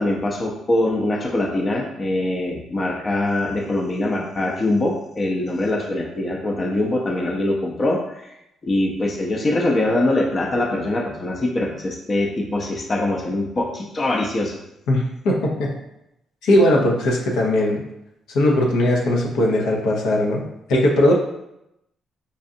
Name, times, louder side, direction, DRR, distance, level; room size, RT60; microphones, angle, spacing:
voice 1, 0.0-8.3 8.6-14.6, left 1 dB, 35° left, 1 dB, 0.6 m, -23 dB
voice 2, 14.9-15.7 16.4-17.8 18.3-20.4 20.7-21.1, left 1 dB, 85° left, -1 dB, 0.8 m, -19 dB
5.2 x 2.4 x 2.7 m, 0.84 s
cardioid pair, 90°, 0 cm